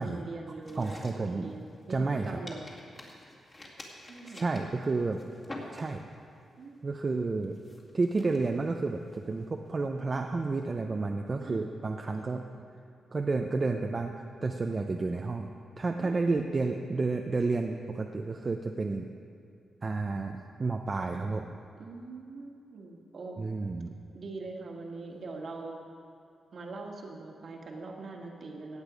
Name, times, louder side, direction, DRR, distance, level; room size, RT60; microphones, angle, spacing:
voice 1, 0.0-2.6 4.0-4.6 6.6-6.8 11.4-11.7 12.1-12.3 14.7-14.9 16.0-16.2 21.8-23.4 24.1-25.8 26.5-28.8, right 3 dB, 50° right, 1 dB, 1.7 m, -42 dB
sound 1, 0.6-2.1 2.5-6.3 6.6-6.9 7.4-9.8, left 1 dB, 30° left, 2.1 m, -48 dB
voice 2, 0.8-1.5 1.9-2.3 4.3-5.2 5.7-6.1 6.8-7.6 7.9-12.4 13.1-14.1 14.4-15.5 15.8-19.1 19.8-21.6 23.4-24.0, right 3 dB, 30° right, 3 dB, 0.6 m, -31 dB
16.5 x 8.8 x 5.1 m, 2.4 s
wide cardioid pair, 125°, 0 cm